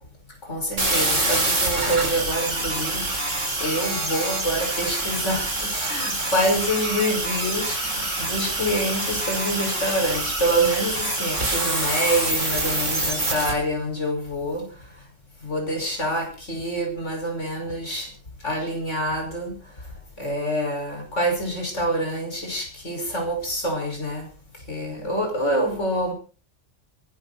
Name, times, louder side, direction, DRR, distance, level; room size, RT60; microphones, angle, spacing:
voice 1, 0.4-14.7 15.4-18.1 18.4-19.6 20.2-24.3 24.7-26.1, right 1 dB, 70° left, 2 dB, 6.1 m, -26 dB
sound 1, 0.8-13.5, right 2 dB, 75° right, 4.6 m, -26 dB
23.5 x 12.5 x 4.3 m, 0.37 s
omnidirectional pair, 1.3 m